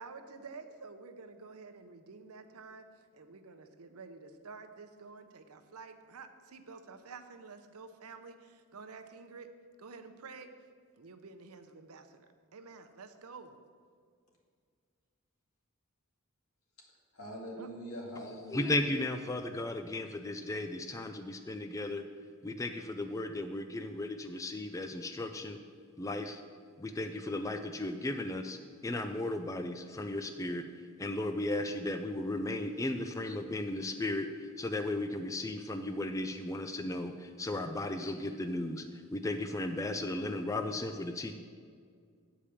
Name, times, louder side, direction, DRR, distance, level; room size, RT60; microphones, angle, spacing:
voice 1, 0.0-9.5 9.8-10.5 11.0-12.2 12.5-13.5 17.6-17.7, right 4 dB, 90° right, 8 dB, 0.7 m, -50 dB
voice 2, 17.1-18.7, equal, 90° left, -2 dB, 2.0 m, -43 dB
voice 3, 18.5-22.0 22.4-25.6 26.0-26.4 26.8-30.6 31.0-41.3, left 2 dB, 15° left, 7 dB, 0.3 m, -35 dB
8.7 x 5.0 x 7.0 m, 2.1 s
head